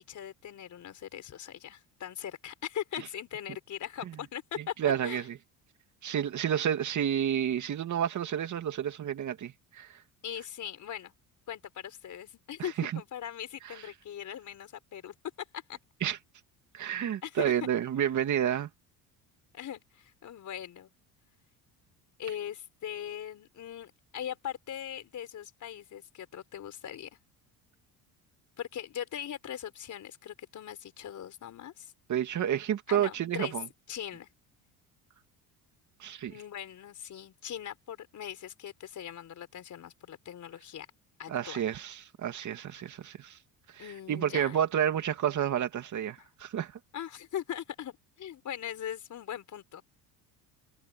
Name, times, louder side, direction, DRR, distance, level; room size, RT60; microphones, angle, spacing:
voice 1, 0.0-5.3 10.2-11.1 11.5-15.8 17.2-17.5 19.5-20.9 22.2-27.1 28.6-31.9 32.9-33.5 33.9-34.3 36.3-40.9 41.2-41.6 43.8-44.6 46.9-49.8, left 10 dB, 50° left, 4.5 m, -40 dB
voice 2, 4.6-5.4 6.0-9.9 12.8-12.9 16.0-16.2 16.7-18.7 32.1-33.7 36.0-36.3 41.3-43.4 43.7-46.7, right 9 dB, 50° right, 2.6 m, -30 dB
cardioid pair, 105°, 38 cm